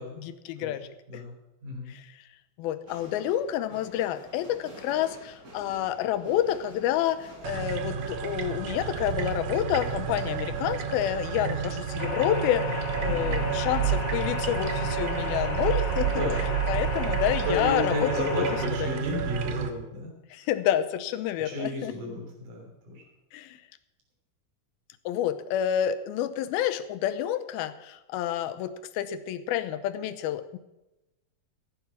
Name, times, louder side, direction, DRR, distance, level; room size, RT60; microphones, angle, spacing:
voice 1, 0.0-1.2 1.9-2.1 2.6-16.1 16.7-18.1 18.4-18.5 18.9-19.0 20.3-21.9 23.3-23.6 25.1-30.6, left 11 dB, 80° left, 11 dB, 2.6 m, -29 dB
voice 2, 1.6-1.9 13.1-13.6 16.1-16.4 17.4-20.1 21.4-23.0, left 1 dB, 55° right, 0 dB, 4.8 m, -32 dB
sound 1, 2.9-11.6, right 1 dB, 35° right, 4.7 m, -48 dB
sound 2, 7.4-19.7, right 8 dB, 85° right, 1.4 m, -30 dB
sound 3, 12.0-18.7, left 3 dB, 35° left, 2.1 m, -33 dB
14.5 x 9.7 x 6.0 m, 0.98 s
omnidirectional pair, 4.3 m